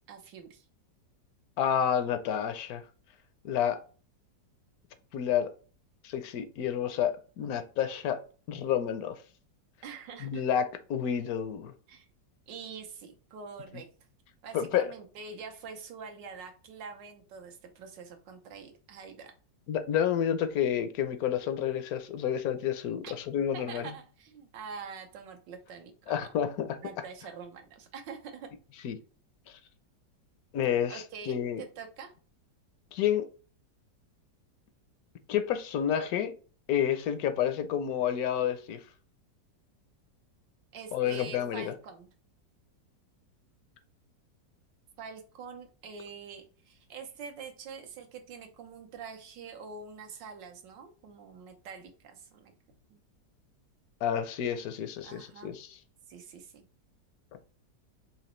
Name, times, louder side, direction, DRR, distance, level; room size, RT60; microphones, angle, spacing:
voice 1, 0.1-0.6 9.8-10.5 11.9-12.1 12.5-13.9 14.4-19.3 23.0-23.1 23.5-26.3 26.8-28.5 30.9-32.1 40.7-42.1 45.0-52.5 52.9-53.0 55.0-55.6 56.1-56.6, right 5 dB, 80° right, 1.6 m, -45 dB
voice 2, 1.6-2.8 3.4-3.8 5.1-5.5 6.0-8.2 8.5-9.2 10.2-11.7 14.5-14.9 19.7-23.9 26.1-26.8 28.8-29.0 30.5-31.6 32.9-33.3 35.3-36.3 36.7-38.8 40.9-41.7 54.0-55.7, left 9 dB, 70° left, 1.0 m, -29 dB
4.9 x 2.9 x 3.1 m
omnidirectional pair, 1.9 m